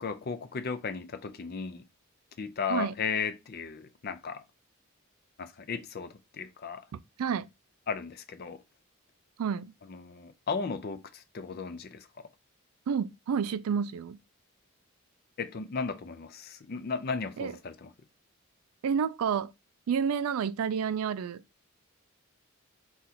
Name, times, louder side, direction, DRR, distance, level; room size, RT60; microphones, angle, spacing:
voice 1, 0.0-1.8 2.4-4.4 5.4-6.8 7.9-8.6 9.9-12.3 15.4-17.9, left 5 dB, 45° left, 0.4 m, -35 dB
voice 2, 6.9-7.5 9.4-9.7 12.9-14.2 17.4-17.5 18.8-19.5 19.9-21.4, right 7 dB, 80° right, 0.3 m, -30 dB
3.8 x 2.4 x 4.1 m
head